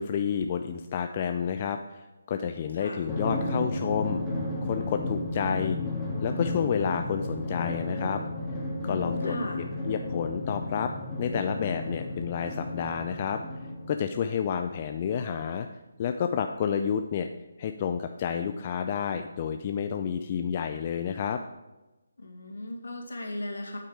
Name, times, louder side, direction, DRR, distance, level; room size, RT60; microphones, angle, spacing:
voice 1, 0.0-4.2 4.6-5.8 6.2-8.2 8.8-9.4 9.8-10.9 11.2-13.4 13.9-15.7 16.0-17.3 17.6-21.4, left 7 dB, 30° left, 7 dB, 0.5 m, -30 dB
voice 2, 2.7-3.2 8.9-9.7 22.2-23.8, left 1 dB, 65° left, 2 dB, 2.3 m, -37 dB
Drum, 3.1-14.1, left 2 dB, 10° left, 2.4 m, -33 dB
8.6 x 8.5 x 4.8 m, 1.1 s
figure-of-eight pair, 150°, 0 cm